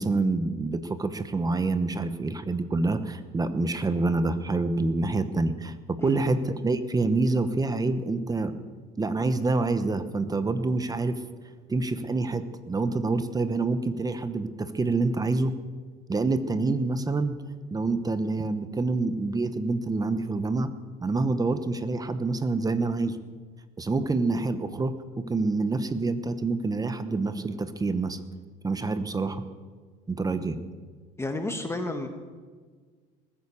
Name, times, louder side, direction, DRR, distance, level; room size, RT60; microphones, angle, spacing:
voice 1, 0.0-8.5 9.0-11.2 11.7-15.5 16.1-17.4 17.7-20.7 21.0-23.2 23.8-28.2 28.6-29.4 30.1-30.6, right 3 dB, 20° right, 11 dB, 1.0 m, -27 dB
voice 2, 31.2-32.1, left 2 dB, 15° left, 6 dB, 1.6 m, -31 dB
20.0 x 9.6 x 7.1 m, 1.5 s
supercardioid pair, 105°, 20 cm